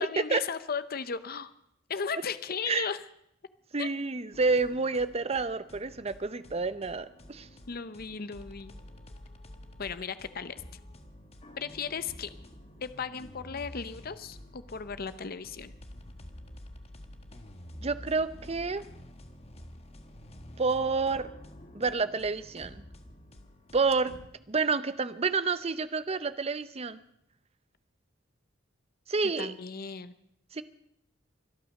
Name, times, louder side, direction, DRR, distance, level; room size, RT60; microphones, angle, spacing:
voice 1, 0.0-1.5 1.9-3.0 3.8-3.9 7.7-8.7 9.8-10.6 11.6-12.3 12.8-15.7 29.2-30.1, left 6 dB, 50° left, 13 dB, 0.7 m, -36 dB
voice 2, 3.7-7.5 17.8-18.8 20.6-21.3 21.7-22.8 23.7-24.1 24.5-27.0 29.1-29.5 30.5-30.6, right 4 dB, 30° right, 14 dB, 0.7 m, -29 dB
sound 1, 4.3-24.3, left 1 dB, 30° left, 1.4 m, -49 dB
24.5 x 9.0 x 6.4 m, 0.76 s
head